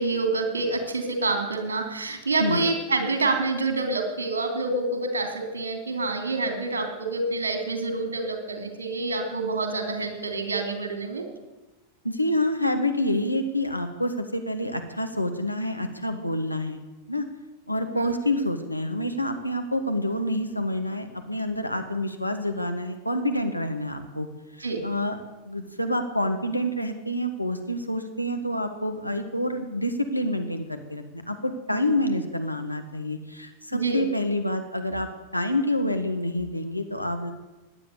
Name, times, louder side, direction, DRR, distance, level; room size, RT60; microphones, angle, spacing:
voice 1, 0.0-11.2 17.9-18.1 24.6-24.8 31.7-32.0 33.7-34.0, right 3 dB, 70° right, 5 dB, 3.1 m, -27 dB
voice 2, 12.0-16.8 17.1-17.3 17.7-24.3 24.6-25.2 25.5-37.3, left 1 dB, 90° left, 6 dB, 1.4 m, -27 dB
16.5 x 10.5 x 8.2 m, 1.1 s
figure-of-eight pair, 90°, 0 cm